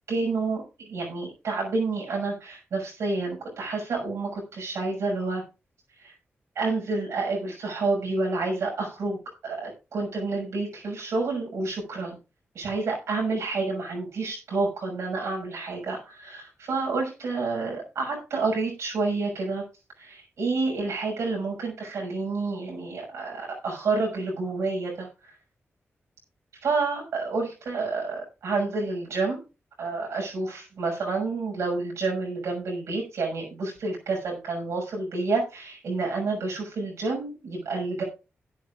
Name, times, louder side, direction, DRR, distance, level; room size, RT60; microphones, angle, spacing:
voice 1, 0.1-5.4 6.0-6.1 6.5-12.2 12.5-19.6 20.0-25.3 26.6-29.4 29.8-38.0, right 3 dB, 90° right, -1 dB, 6.2 m, -29 dB
17.0 x 10.0 x 2.5 m, 0.30 s
cardioid pair, 55°, 5 cm